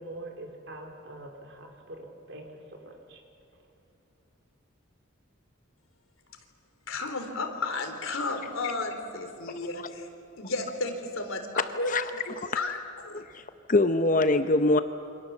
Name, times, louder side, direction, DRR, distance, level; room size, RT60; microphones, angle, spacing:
voice 1, 0.0-3.2, right 1 dB, 60° right, 2 dB, 3.7 m, -44 dB
voice 2, 6.9-10.1 10.4-11.9 12.3-13.2, left 3 dB, 80° left, 6 dB, 3.3 m, -33 dB
voice 3, 13.1-14.8, left 2 dB, 40° left, 9 dB, 0.7 m, -24 dB
28.0 x 25.5 x 7.3 m, 2.6 s
head